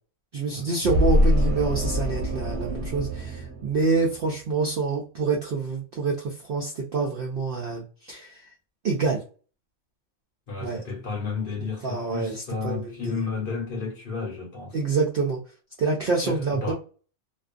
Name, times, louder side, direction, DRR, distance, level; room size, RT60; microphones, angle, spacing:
voice 1, 0.3-8.4 8.8-9.2 10.6-10.8 11.8-13.2 14.7-15.4 15.8-16.7, right 4 dB, 65° right, 0.5 m, -27 dB
sound 1, 0.8-4.3, equal, 45° right, 0.9 m, -25 dB
voice 2, 10.5-14.8 16.2-16.7, left 4 dB, 45° left, 0.8 m, -32 dB
2.4 x 2.3 x 2.4 m
omnidirectional pair, 1.4 m